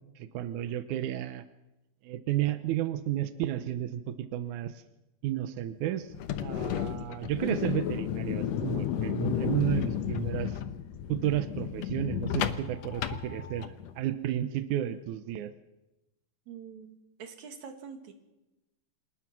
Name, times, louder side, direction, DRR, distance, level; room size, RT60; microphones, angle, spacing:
voice 1, 0.2-1.4 2.0-4.7 5.2-6.1 6.4-10.6 11.1-15.5, right 13 dB, 75° right, 10 dB, 1.8 m, -32 dB
sound 1, 6.1-13.9, left 10 dB, 75° left, 1.6 m, -32 dB
voice 2, 16.5-18.1, right 6 dB, 55° right, 5 dB, 3.2 m, -45 dB
27.5 x 19.0 x 6.1 m, 0.98 s
omnidirectional pair, 4.4 m